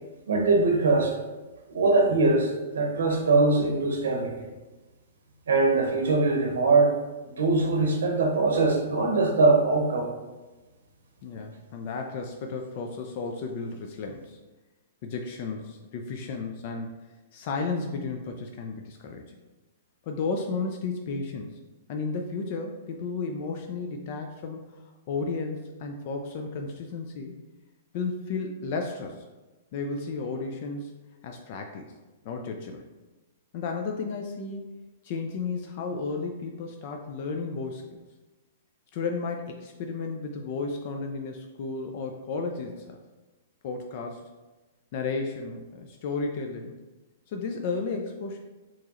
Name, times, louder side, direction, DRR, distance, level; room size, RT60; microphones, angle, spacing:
voice 1, 0.3-1.2 1.7-4.5 5.5-6.9 7.4-10.1, right 3 dB, 85° right, 2 dB, 0.7 m, -22 dB
voice 2, 11.2-14.4 15.0-16.9 17.3-19.3 20.1-21.6 21.9-24.8 25.1-27.4 27.9-29.3 29.7-30.9 31.2-31.9 32.2-32.8 33.5-34.6 35.0-37.9 38.9-43.0 43.6-44.3 44.9-46.8 47.3-48.4, left 4 dB, 50° left, 3 dB, 0.4 m, -33 dB
4.5 x 3.0 x 2.9 m, 1.2 s
hypercardioid pair, 130°, 0 cm